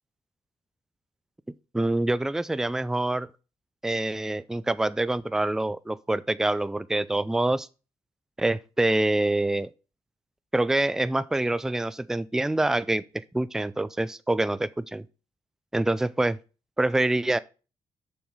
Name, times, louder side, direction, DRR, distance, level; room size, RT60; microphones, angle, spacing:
voice 1, 1.7-3.3 3.8-7.7 8.4-9.7 10.5-13.0 13.3-15.0 15.7-16.4 16.8-17.4, right 2 dB, 5° right, 0.3 m, -25 dB
7.0 x 6.3 x 4.8 m
wide cardioid pair, 140°, 10 cm